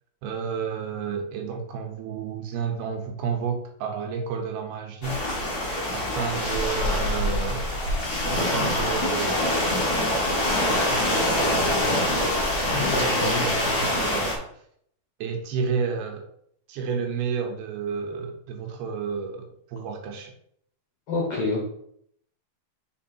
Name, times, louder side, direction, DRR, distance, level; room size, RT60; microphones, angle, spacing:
voice 1, 0.2-5.2 5.9-7.7 8.3-9.4 10.6-14.5 15.2-16.3 16.7-20.3, right 6 dB, 80° right, 4 dB, 2.8 m, -31 dB
sound 1, 5.0-14.3, left 1 dB, 80° left, 0.8 m, -25 dB
voice 2, 12.6-13.5 21.1-21.6, left 3 dB, 65° left, -2 dB, 1.5 m, -27 dB
5.4 x 4.7 x 4.4 m, 0.68 s
omnidirectional pair, 4.5 m